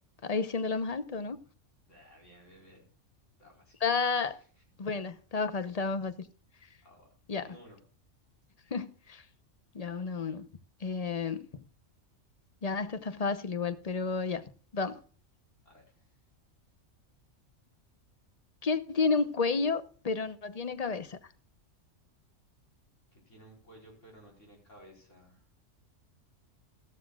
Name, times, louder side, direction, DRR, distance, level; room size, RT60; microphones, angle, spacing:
voice 1, 0.2-1.4 3.8-4.4 4.8-6.1 7.3-7.5 8.7-9.2 9.7-10.5 10.8-11.6 12.6-14.4 14.7-15.0 18.6-21.2, left 4 dB, 35° left, 0.8 m, -31 dB
voice 2, 1.9-2.8 3.4-3.8 4.0-4.5 4.8-5.1 6.8-7.1 7.4-7.8 15.6-16.2 23.1-25.5, equal, 70° left, 4.9 m, -56 dB
14.0 x 13.5 x 2.4 m
omnidirectional pair, 1.3 m